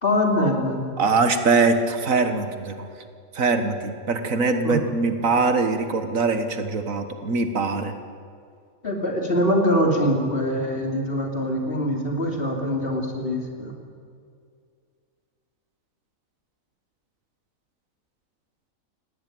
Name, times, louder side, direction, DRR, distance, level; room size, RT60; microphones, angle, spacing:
voice 1, 0.0-0.9 4.6-4.8 8.8-13.7, equal, 40° left, 2 dB, 3.2 m, -23 dB
voice 2, 1.0-2.9 3.3-7.9, right 4 dB, 70° right, 8 dB, 1.8 m, -22 dB
19.5 x 17.0 x 9.3 m, 2.2 s
omnidirectional pair, 1.5 m